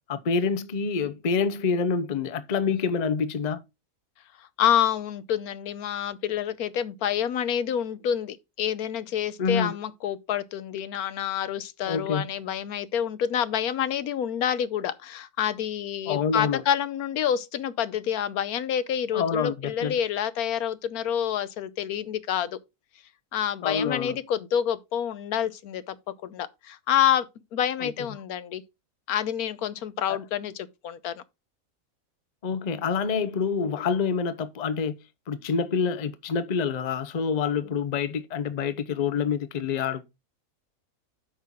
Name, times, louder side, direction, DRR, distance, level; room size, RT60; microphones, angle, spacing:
voice 1, 0.1-3.6 9.4-9.7 11.9-12.3 16.1-16.6 19.1-19.9 23.6-24.2 27.8-27.9 30.1-30.2 32.4-35.0 35.3-40.0, left 5 dB, 40° left, 0.7 m, -27 dB
voice 2, 4.6-22.6 23.3-26.0 26.2-27.3 27.5-28.6 29.1-31.2, left 9 dB, 90° left, 1.3 m, -28 dB
8.6 x 5.7 x 3.6 m
omnidirectional pair, 1.5 m